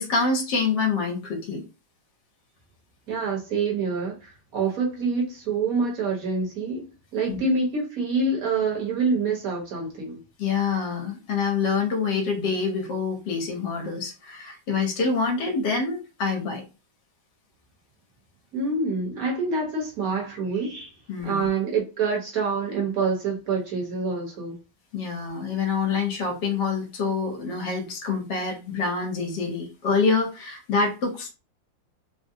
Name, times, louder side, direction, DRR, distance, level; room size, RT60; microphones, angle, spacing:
voice 1, 0.0-1.6 7.3-7.4 10.4-16.6 21.1-21.5 24.9-31.3, left 4 dB, 70° left, 1.4 m, -26 dB
voice 2, 3.1-10.2 18.5-20.9 21.2-24.6, right 4 dB, 55° right, 1.4 m, -26 dB
3.8 x 2.0 x 2.6 m
omnidirectional pair, 2.1 m